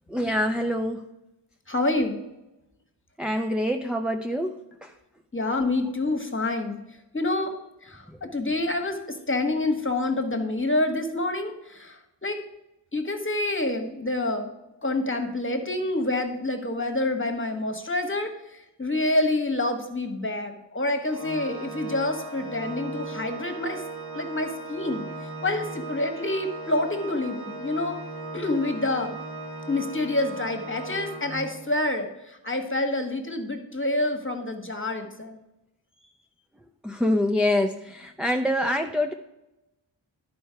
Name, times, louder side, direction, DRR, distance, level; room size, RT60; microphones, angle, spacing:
voice 1, 0.1-1.1 3.2-4.9 36.8-39.1, left 1 dB, ahead, 4 dB, 0.5 m, -25 dB
voice 2, 1.7-2.2 5.3-6.8 7.1-7.6 7.8-12.4 12.9-14.5 14.8-23.8 24.1-25.0 25.4-28.0 28.3-29.2 29.7-35.4, left 2 dB, 25° left, 5 dB, 1.4 m, -27 dB
Organ, 21.0-31.8, right 3 dB, 55° right, 1.3 m, -38 dB
11.0 x 4.4 x 5.7 m, 0.95 s
wide cardioid pair, 55°, 46 cm